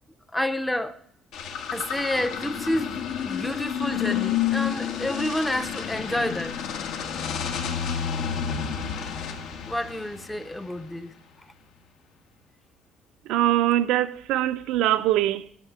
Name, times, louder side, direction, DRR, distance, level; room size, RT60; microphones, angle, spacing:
voice 1, 0.3-1.0 1.7-6.6 9.7-11.1, left 1 dB, 5° left, 0.6 m, -29 dB
sound 1, 1.3-10.8, left 8 dB, 75° left, 1.7 m, -30 dB
voice 2, 13.3-15.6, right 13 dB, 80° right, 0.5 m, -23 dB
11.0 x 6.5 x 8.0 m
cardioid pair, 175°, 0 cm